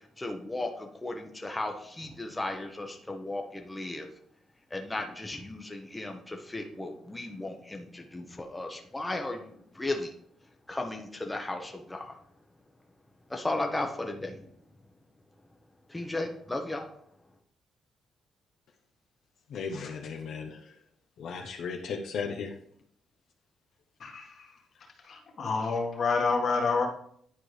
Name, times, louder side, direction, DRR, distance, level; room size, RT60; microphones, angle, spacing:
voice 1, 0.2-4.1 4.7-10.1 10.7-12.1 13.3-14.4 15.9-16.9, left 2 dB, 15° left, 3 dB, 0.9 m, -35 dB
voice 2, 19.5-20.8 21.2-22.5, left 5 dB, 70° left, 2 dB, 0.8 m, -36 dB
voice 3, 24.0-24.5 25.1-26.9, left 4 dB, 55° left, 1 dB, 1.6 m, -28 dB
10.5 x 4.6 x 3.2 m, 0.66 s
cardioid pair, 90°, 0 cm